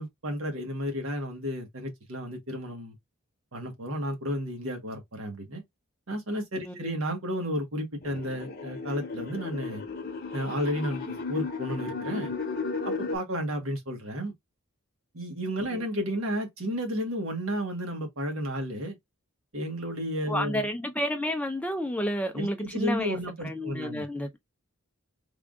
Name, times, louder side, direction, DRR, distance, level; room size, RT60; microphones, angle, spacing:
voice 1, 0.0-2.9 3.5-5.6 6.1-9.8 10.3-12.3 12.8-14.3 15.1-19.0 19.5-20.7 22.3-24.0, equal, 75° right, 1.3 m, -32 dB
sound 1, 8.0-13.2, left 4 dB, 45° left, 0.9 m, -34 dB
voice 2, 20.3-24.4, equal, 5° left, 0.4 m, -31 dB
3.5 x 2.4 x 3.5 m
head